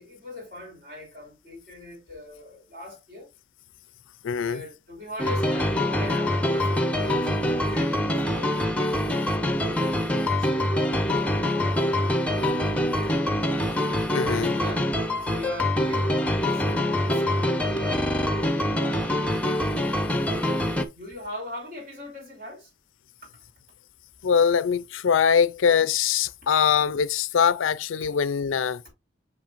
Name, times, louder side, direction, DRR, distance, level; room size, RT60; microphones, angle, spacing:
voice 1, 0.0-3.3 4.4-8.5 9.1-9.5 9.8-13.4 14.3-14.9 15.2-19.1 20.9-22.7, left 1 dB, 50° right, 4.7 m, -41 dB
voice 2, 4.2-4.6 14.1-14.5 24.2-28.8, left 7 dB, 85° left, 0.4 m, -22 dB
sound 1, 5.2-20.9, left 1 dB, 5° left, 0.7 m, -25 dB
7.2 x 6.2 x 2.5 m
head